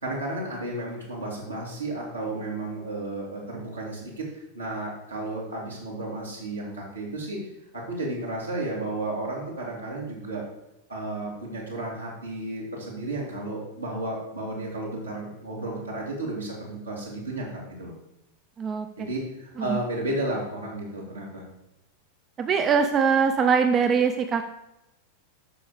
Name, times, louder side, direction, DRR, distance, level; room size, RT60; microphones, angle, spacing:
voice 1, 0.0-7.4 7.7-10.5 10.9-17.9 19.0-21.5, right 2 dB, 80° right, -4 dB, 3.0 m, -33 dB
voice 2, 22.4-24.4, right 6 dB, 25° right, 7 dB, 0.6 m, -22 dB
8.6 x 6.3 x 5.0 m, 0.90 s
figure-of-eight pair, 90°, 0 cm